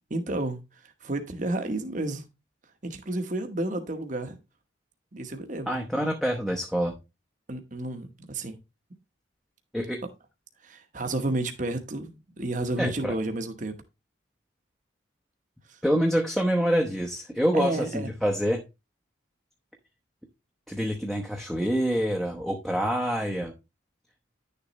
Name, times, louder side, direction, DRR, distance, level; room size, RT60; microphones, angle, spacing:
voice 1, 0.1-2.3 2.8-4.4 5.1-5.7 7.5-8.6 10.6-13.7 15.7-15.8 17.5-18.1, right 2 dB, 40° right, 1.0 m, -31 dB
voice 2, 5.7-6.9 9.7-10.0 12.8-13.2 15.8-18.6 20.7-23.5, equal, ahead, 0.9 m, -26 dB
10.5 x 6.8 x 3.1 m
head